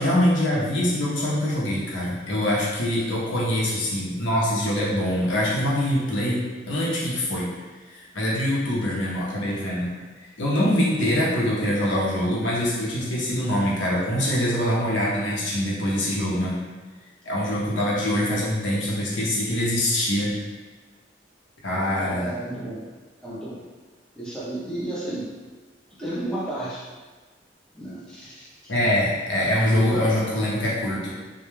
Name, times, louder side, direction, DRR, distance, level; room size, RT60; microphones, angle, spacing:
voice 1, 0.0-7.5 7.9-16.6 17.2-20.4 21.6-22.3 28.7-31.1, left 1 dB, 80° left, -5 dB, 0.7 m, -24 dB
voice 2, 22.0-22.8 23.2-23.6 24.1-25.3 26.0-26.8 27.7-28.7, right 1 dB, 5° left, -8 dB, 0.5 m, -32 dB
2.2 x 2.1 x 3.0 m, 1.4 s
head